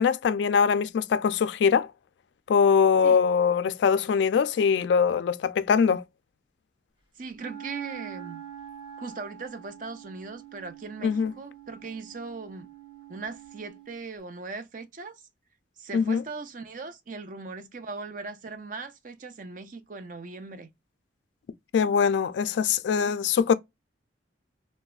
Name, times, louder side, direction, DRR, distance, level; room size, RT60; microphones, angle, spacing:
voice 1, 0.0-1.9 2.5-6.0 11.0-11.3 15.9-16.2 21.7-23.5, left 6 dB, 75° left, 0.3 m, -22 dB
voice 2, 7.2-8.4 9.0-12.7 13.1-15.2 15.8-20.7, right 4 dB, 45° right, 0.5 m, -39 dB
Wind instrument woodwind instrument, 7.3-14.0, right 9 dB, 30° right, 1.8 m, -45 dB
3.1 x 2.1 x 2.3 m
head